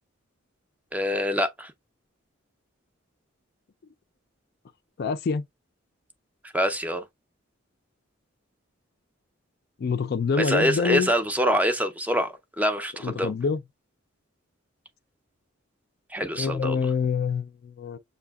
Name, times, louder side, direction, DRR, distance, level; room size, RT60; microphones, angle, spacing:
voice 1, 0.9-1.7 6.5-7.1 10.4-13.3 16.1-16.8, equal, 10° right, 0.5 m, -25 dB
voice 2, 5.0-5.4 9.8-11.1 13.0-13.6 16.4-18.0, left 5 dB, 50° left, 0.4 m, -26 dB
6.8 x 2.7 x 2.3 m
head